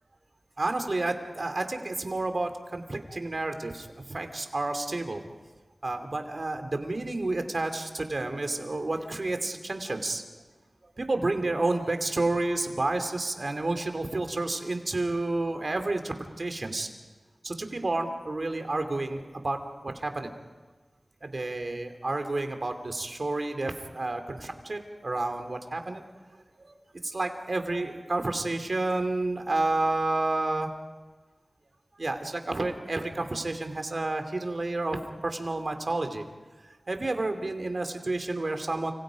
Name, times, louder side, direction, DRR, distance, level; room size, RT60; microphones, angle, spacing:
voice 1, 0.6-5.2 5.8-10.2 11.0-16.9 17.4-19.6 19.8-20.3 21.2-26.0 26.6-26.7 27.0-30.7 32.0-36.2 36.9-38.9, right 2 dB, 60° right, 6 dB, 2.8 m, -30 dB
29.5 x 26.5 x 5.2 m, 1.3 s
wide cardioid pair, 45°, 0 cm